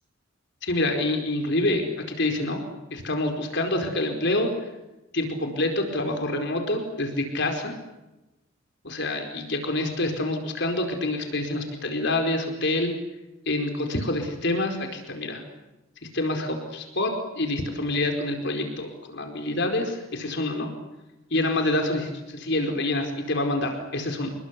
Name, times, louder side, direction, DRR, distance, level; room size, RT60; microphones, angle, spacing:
voice 1, 0.6-2.6 2.9-4.5 5.1-7.7 8.8-12.9 13.5-15.4 16.1-20.7 21.3-24.3, left 2 dB, 55° left, 4 dB, 4.7 m, -27 dB
28.5 x 22.0 x 8.4 m, 1.0 s
head